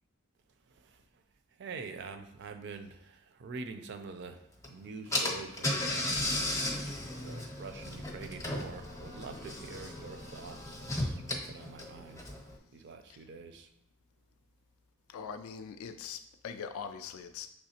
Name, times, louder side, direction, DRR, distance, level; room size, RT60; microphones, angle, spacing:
voice 1, 1.6-6.4 7.2-11.2 11.5-12.3 12.7-13.7, right 4 dB, 55° right, 8 dB, 0.4 m, -45 dB
Car / Engine, 4.6-4.7 5.1-12.5, left 1 dB, 15° left, 0.6 m, -35 dB
voice 2, 15.1-17.5, left 6 dB, 70° left, 8 dB, 0.3 m, -42 dB
5.7 x 3.3 x 2.8 m, 0.80 s
head